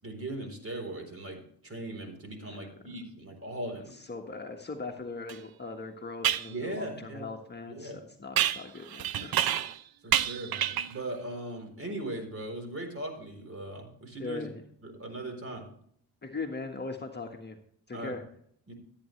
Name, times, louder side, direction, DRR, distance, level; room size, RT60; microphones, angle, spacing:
voice 1, 0.0-3.9 6.5-7.3 7.8-8.0 10.0-14.4 14.8-15.7 17.9-18.2 18.7-18.8, right 1 dB, 35° right, 5 dB, 4.1 m, -39 dB
voice 2, 3.9-9.4 14.2-14.6 16.2-17.6 17.9-18.2, left 3 dB, 25° left, 3 dB, 1.5 m, -40 dB
sound 1, 5.3-5.4 6.2-6.5 8.4-9.8 10.1-11.0, right 10 dB, 60° right, 0.8 m, -28 dB
14.0 x 9.4 x 3.3 m, 0.64 s
supercardioid pair, 70°, 41 cm